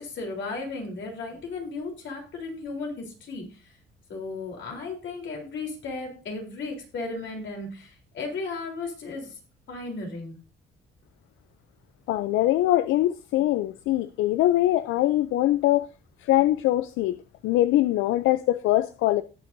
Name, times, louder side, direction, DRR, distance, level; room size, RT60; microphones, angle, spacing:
voice 1, 0.0-3.7 4.1-9.4 9.7-10.4, left 3 dB, 70° left, 3.6 m, -35 dB
voice 2, 12.1-15.9 16.2-17.2 17.4-19.2, left 15 dB, 90° left, 0.5 m, -22 dB
18.0 x 6.0 x 2.6 m
cardioid pair, 90°, 20 cm